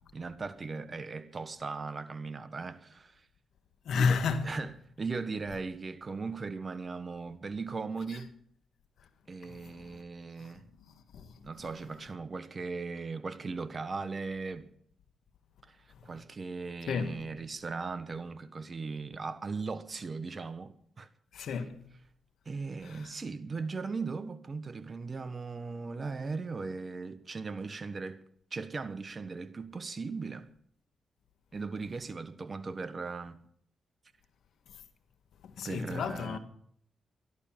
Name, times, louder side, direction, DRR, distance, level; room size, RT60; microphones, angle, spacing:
voice 1, 0.1-3.2 3.9-4.2 4.4-4.7 5.0-8.3 9.3-10.6 11.4-14.7 15.6-15.8 16.0-21.1 22.4-28.2 28.5-30.5 31.5-33.4 35.6-36.4, right 4 dB, 45° right, 1.4 m, -38 dB
voice 2, 3.8-4.6 8.1-8.2 9.4-10.0 10.4-10.5 10.9-11.3 16.9-17.3 21.3-21.9 22.8-23.1 35.4-36.4, left 5 dB, 80° left, 1.5 m, -33 dB
14.0 x 11.5 x 7.4 m
cardioid pair, 60°, 0 cm